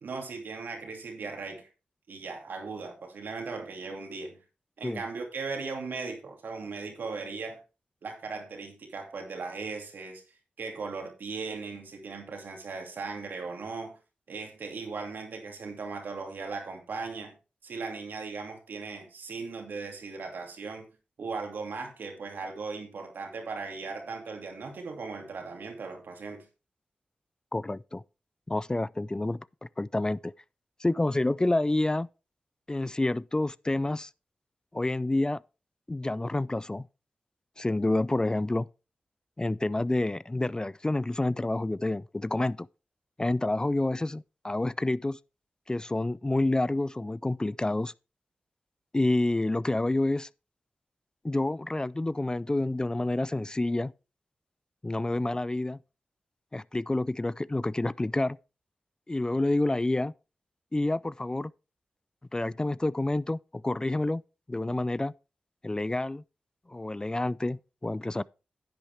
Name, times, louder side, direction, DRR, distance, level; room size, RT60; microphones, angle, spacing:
voice 1, 0.0-1.7 2.1-4.4 4.8-7.6 8.0-10.2 10.6-13.9 14.3-17.3 17.6-20.8 21.2-26.4, right 4 dB, 80° right, 2.5 m, -38 dB
voice 2, 27.5-28.0 28.5-29.5 29.8-30.3 30.8-32.1 32.7-34.1 34.7-35.4 35.9-36.9 37.6-38.7 39.4-42.7 43.2-45.2 45.7-47.9 48.9-50.3 51.2-53.9 54.8-55.8 56.5-58.4 59.1-60.1 60.7-61.5 62.3-64.2 64.5-65.1 65.6-66.2 66.7-68.2, left 2 dB, 25° left, 0.4 m, -28 dB
10.5 x 8.3 x 3.4 m
cardioid pair, 40°, 3 cm